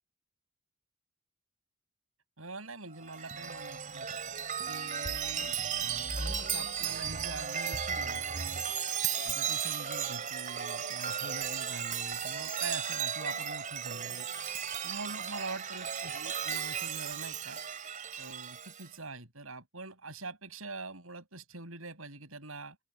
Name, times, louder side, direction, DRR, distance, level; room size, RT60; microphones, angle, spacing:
voice 1, 2.4-8.6 9.2-14.3 14.8-17.6 18.2-22.8, right 3 dB, 80° right, 6.7 m, -44 dB
Chime, 3.0-18.9, right 7 dB, 40° right, 4.1 m, -35 dB
open air
head